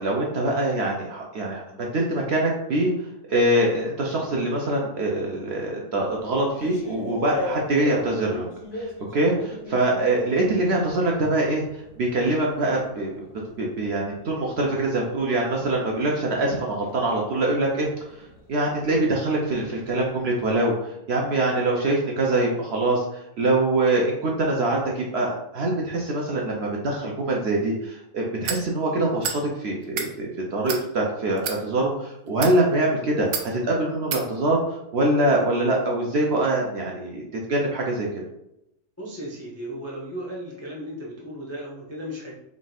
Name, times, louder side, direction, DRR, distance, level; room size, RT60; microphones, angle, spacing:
voice 1, 0.0-2.9 3.3-8.5 8.7-13.2 13.6-17.9 18.2-18.3 18.5-34.6 34.9-37.2 37.5-38.1, right 2 dB, 60° right, -1 dB, 0.7 m, -24 dB
sound 1, 5.9-11.1 11.5-20.4, left 2 dB, 85° left, 1.3 m, -39 dB
sound 2, 28.4-28.6 29.2-29.4 29.8-30.1 30.7-30.8 31.4-31.6 32.3-32.6 33.3-33.5 34.1-34.2, right 6 dB, 80° right, 1.1 m, -29 dB
voice 2, 39.0-42.3, equal, 25° left, -5 dB, 0.3 m, -35 dB
3.6 x 2.5 x 3.9 m, 0.82 s
omnidirectional pair, 1.6 m